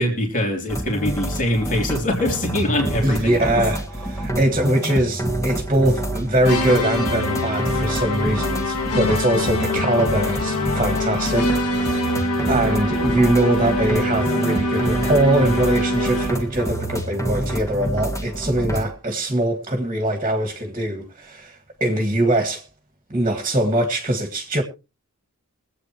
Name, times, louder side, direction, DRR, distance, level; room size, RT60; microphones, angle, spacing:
voice 1, 0.0-3.6, left 1 dB, 35° left, 3.3 m, -23 dB
sound 1, 0.7-18.9, right 1 dB, 15° left, 1.8 m, -27 dB
voice 2, 3.0-22.6 23.1-24.6, right 1 dB, 25° right, 1.9 m, -22 dB
sound 2, 6.4-16.5, left 1 dB, 90° left, 2.2 m, -24 dB
23.5 x 8.6 x 3.0 m
head